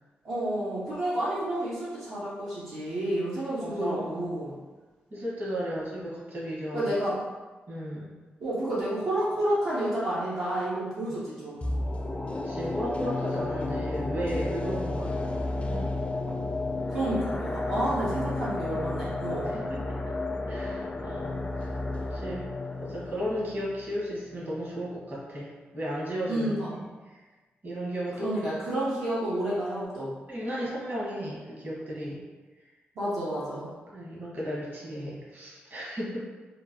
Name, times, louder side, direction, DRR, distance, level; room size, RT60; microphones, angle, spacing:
voice 1, 0.2-4.5 6.7-7.2 8.4-11.8 16.9-19.6 26.3-26.7 28.2-30.1 33.0-33.7, right 1 dB, 70° right, -10 dB, 0.7 m, -30 dB
voice 2, 3.6-4.4 5.1-6.9 7.7-8.1 11.1-11.2 12.4-15.1 15.7-15.9 17.9-18.0 19.5-19.8 20.5-21.7 22.1-22.5 22.8-27.2 27.6-28.3 30.3-32.2 33.9-36.2, equal, 45° right, -6 dB, 1.2 m, -35 dB
sound 1, 11.6-24.7 25.0-25.1, left 2 dB, 25° left, 0.4 m, -32 dB
2.9 x 2.2 x 2.6 m, 1.3 s
supercardioid pair, 45°, 5 cm